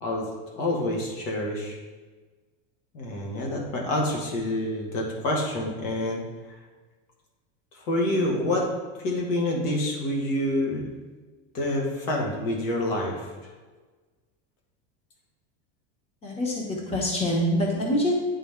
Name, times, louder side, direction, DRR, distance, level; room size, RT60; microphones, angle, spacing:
voice 1, 0.6-1.8 2.9-6.2 6.5-6.6 7.7-8.7 9.0-10.9 11.5-13.3, left 1 dB, 80° left, -1 dB, 2.1 m, -27 dB
voice 2, 16.2-18.1, equal, 15° left, -2 dB, 1.1 m, -25 dB
10.0 x 4.1 x 3.7 m, 1.3 s
cardioid pair, 170°, 37 cm